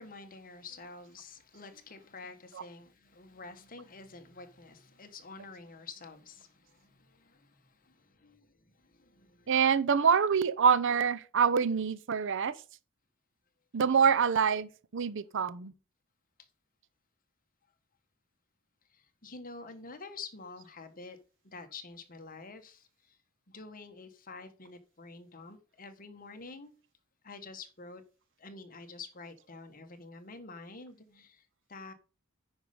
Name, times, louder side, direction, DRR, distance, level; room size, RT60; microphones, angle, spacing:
voice 1, 0.0-8.5 8.8-9.5 19.2-21.2 21.4-22.9 23.5-26.7 27.2-28.0 28.4-31.4 31.7-31.9, left 4 dB, 40° left, 1.4 m, -48 dB
voice 2, 9.5-12.5 13.7-15.7, right 6 dB, 60° right, 0.6 m, -26 dB
9.5 x 5.5 x 5.2 m
head